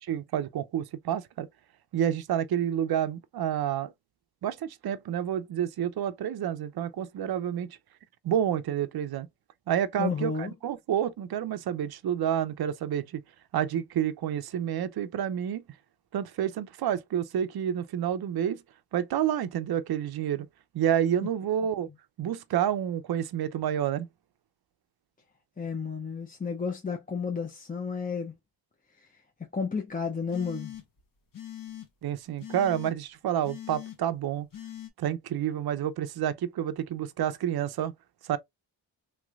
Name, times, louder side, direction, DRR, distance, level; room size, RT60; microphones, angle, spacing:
voice 1, 0.1-1.5 1.9-3.9 4.4-7.8 8.2-9.3 9.7-13.2 13.5-15.6 16.1-18.6 18.9-20.5 20.7-21.9 22.2-24.1 32.0-34.5 35.0-37.9 38.3-38.4, right 10 dB, 55° right, 0.6 m, -29 dB
voice 2, 10.0-10.5 21.2-21.3 25.6-28.3 29.0-29.1 29.5-30.7, left 5 dB, 20° left, 0.5 m, -32 dB
sound 1, 30.3-31.0 31.3-31.9 32.4-32.9 33.4-34.0 34.5-34.9, left 12 dB, 45° left, 1.0 m, -41 dB
3.1 x 3.1 x 2.3 m
cardioid pair, 75°, 46 cm